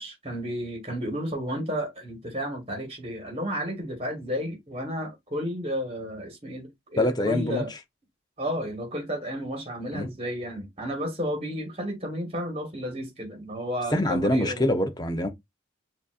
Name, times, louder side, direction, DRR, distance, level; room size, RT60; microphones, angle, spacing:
voice 1, 0.0-7.7 8.4-14.7, equal, 30° right, 1.5 m, -32 dB
voice 2, 7.0-7.8 9.9-10.1 13.9-15.3, left 1 dB, 20° left, 0.7 m, -25 dB
7.1 x 2.8 x 2.5 m
head